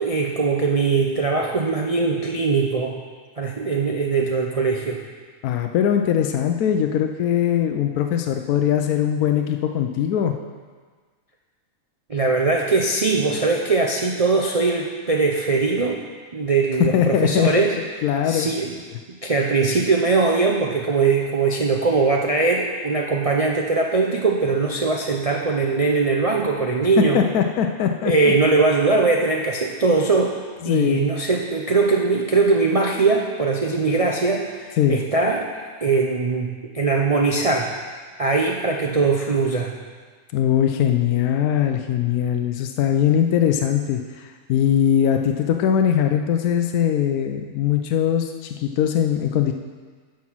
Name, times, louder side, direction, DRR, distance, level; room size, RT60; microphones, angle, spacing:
voice 1, 0.0-3.0 3.4-5.0 12.1-16.0 16.3-17.8 18.2-18.8 19.1-27.2 28.0-30.3 30.6-35.5 35.8-36.5 36.7-37.7 38.2-39.7, right 4 dB, 50° right, -1 dB, 0.4 m, -21 dB
voice 2, 5.4-10.3 16.9-17.7 18.0-18.5 27.0-28.3 30.6-31.1 34.8-35.0 40.3-49.5, left 9 dB, 80° left, 5 dB, 1.1 m, -21 dB
9.5 x 6.1 x 6.1 m, 1.5 s
omnidirectional pair, 1.6 m